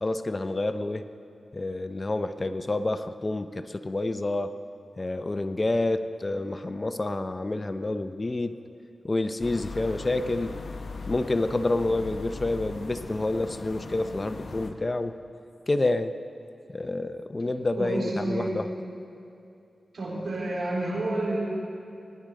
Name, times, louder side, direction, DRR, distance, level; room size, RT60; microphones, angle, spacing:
voice 1, 0.0-1.1 1.5-4.5 5.0-8.6 9.0-10.6 11.1-15.2 15.7-16.2 16.7-18.7, left 2 dB, 40° left, 11 dB, 0.6 m, -28 dB
sound 1, 9.4-14.7, left 4 dB, 75° left, 0.9 m, -39 dB
voice 2, 17.8-18.7 19.9-21.4, right 2 dB, 70° right, -5 dB, 3.8 m, -29 dB
20.0 x 10.5 x 3.8 m, 2.6 s
cardioid pair, 45°, 0 cm